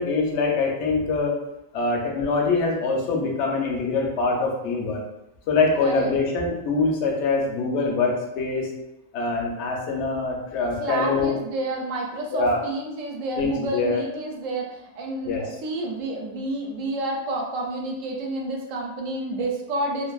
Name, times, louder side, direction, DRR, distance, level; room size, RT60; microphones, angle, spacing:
voice 1, 0.0-1.4 1.7-5.0 5.5-8.7 9.1-11.4 12.3-12.6 13.4-14.1 15.3-15.4, left 3 dB, 65° left, 0 dB, 0.8 m, -24 dB
voice 2, 10.8-20.1, right 2 dB, 70° right, 0 dB, 0.9 m, -29 dB
2.6 x 2.4 x 2.2 m, 0.90 s
omnidirectional pair, 1.5 m